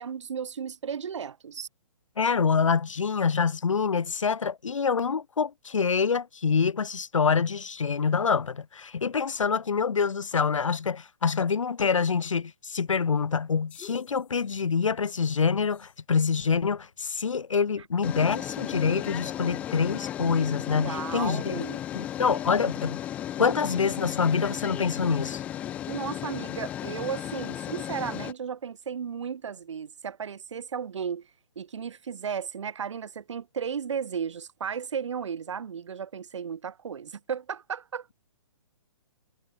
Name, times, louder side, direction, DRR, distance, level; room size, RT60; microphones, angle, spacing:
voice 1, 0.0-1.7 20.7-21.8 25.9-31.3 31.6-38.1, right 7 dB, 65° right, 0.5 m, -34 dB
voice 2, 2.2-21.6 21.9-23.0 23.4-25.4, left 5 dB, 75° left, 0.5 m, -26 dB
sound 1, 13.7-14.1 15.8-15.9 18.0-28.3, left 11 dB, 10° left, 0.3 m, -35 dB
figure-of-eight pair, 130°, 16 cm